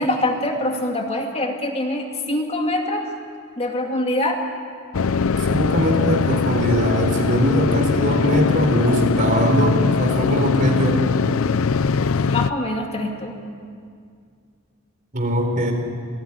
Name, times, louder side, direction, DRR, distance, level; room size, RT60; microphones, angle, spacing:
voice 1, 0.0-3.1 3.6-4.4 12.3-13.4, left 1 dB, 30° left, 2 dB, 2.4 m, -24 dB
sound 1, 4.9-12.5, left 5 dB, 80° left, 0.6 m, -21 dB
voice 2, 5.5-11.0 15.1-15.7, equal, 40° right, 4 dB, 3.8 m, -21 dB
27.0 x 17.5 x 9.9 m, 2.2 s
head